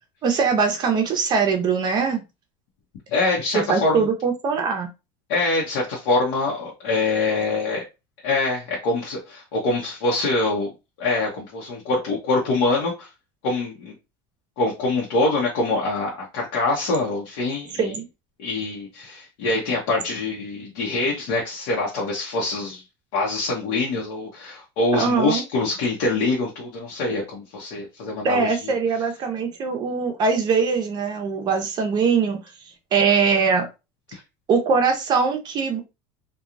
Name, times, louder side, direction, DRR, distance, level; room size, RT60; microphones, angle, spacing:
voice 1, 0.2-2.2 3.5-4.9 17.8-18.0 24.9-25.4 28.2-32.4 32.9-33.7 34.5-35.8, right 5 dB, 35° right, 4 dB, 0.7 m, -21 dB
voice 2, 3.1-4.1 5.3-7.8 8.2-10.7 11.0-13.1 13.4-13.9 14.6-17.9 18.4-22.8 23.1-28.7 34.1-34.2, left 2 dB, 65° left, -2 dB, 0.9 m, -24 dB
2.9 x 2.3 x 2.4 m, 0.26 s
supercardioid pair, 140°, 13 cm